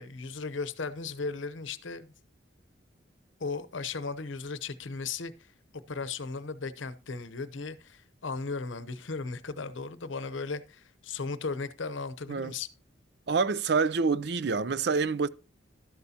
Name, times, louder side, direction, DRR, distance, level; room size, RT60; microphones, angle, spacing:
voice 1, 0.0-2.1 3.4-5.5 5.9-12.7, left 4 dB, 85° left, 0.8 m, -36 dB
voice 2, 13.3-15.3, right 4 dB, 60° right, 0.5 m, -27 dB
12.5 x 11.0 x 2.8 m
head